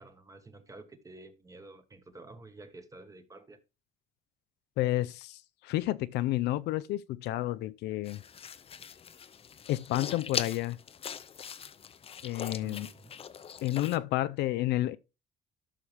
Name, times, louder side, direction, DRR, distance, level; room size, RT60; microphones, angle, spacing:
voice 1, 0.0-3.6 12.6-13.1, right 2 dB, 20° right, 1.4 m, -50 dB
voice 2, 4.8-8.2 9.7-10.8 12.2-12.9 13.6-15.0, left 15 dB, 80° left, 0.5 m, -30 dB
sound 1, 8.1-14.0, left 7 dB, 35° left, 0.6 m, -41 dB
13.0 x 5.7 x 3.3 m
cardioid pair, 110°, 17 cm